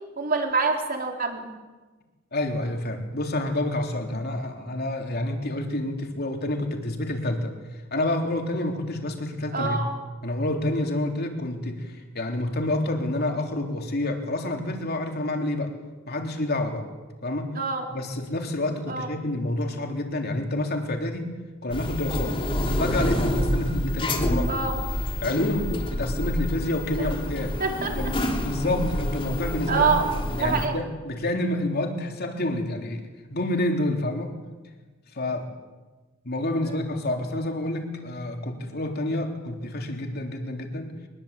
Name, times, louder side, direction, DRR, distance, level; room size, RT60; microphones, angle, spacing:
voice 1, 0.2-1.4 9.5-9.9 17.6-17.9 18.9-19.1 24.5-24.7 27.0-27.1 27.6-28.0 29.7-30.0 30.3-30.8 36.6-36.8, right 4 dB, 45° right, 3 dB, 3.8 m, -25 dB
voice 2, 2.3-7.6 7.9-9.8 10.2-15.7 16.1-16.8 17.2-17.6 17.9-21.3 21.6-22.4 22.8-24.6 25.2-27.6 28.0-28.2 28.4-29.9 30.4-33.0 33.3-34.3 35.1-35.5 36.2-41.0, left 1 dB, 50° left, 3 dB, 3.5 m, -28 dB
sound 1, 21.7-30.7, left 1 dB, 25° left, 3.4 m, -27 dB
24.0 x 21.0 x 8.4 m, 1.3 s
head